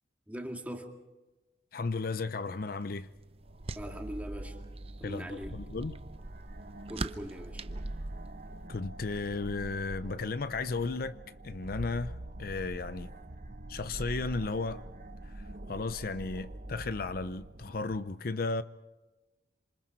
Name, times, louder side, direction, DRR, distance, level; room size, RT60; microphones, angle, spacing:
voice 1, 0.3-1.0 3.8-4.7 5.0-5.6 6.9-7.7, equal, 10° right, 2.2 m, -41 dB
voice 2, 1.7-3.1 5.0-5.9 8.7-11.2 11.4-13.1 13.7-14.8 15.2-18.6, left 3 dB, 55° left, 0.6 m, -34 dB
sound 1, 2.5-8.7, right 3 dB, 35° right, 0.6 m, -45 dB
sound 2, 3.4-18.0, right 1 dB, 50° right, 1.1 m, -44 dB
28.0 x 26.5 x 4.5 m
head